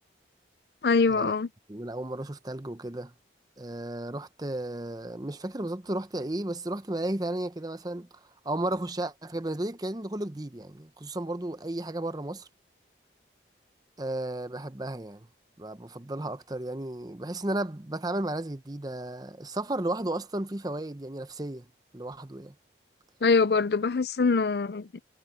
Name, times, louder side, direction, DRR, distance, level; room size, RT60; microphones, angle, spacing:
voice 1, 0.8-1.5 23.2-25.0, left 4 dB, 60° left, 0.5 m, -24 dB
voice 2, 1.7-3.1 3.6-8.1 8.4-12.5 14.0-15.3 15.6-21.7 21.9-22.5, right 1 dB, 20° right, 0.8 m, -33 dB
head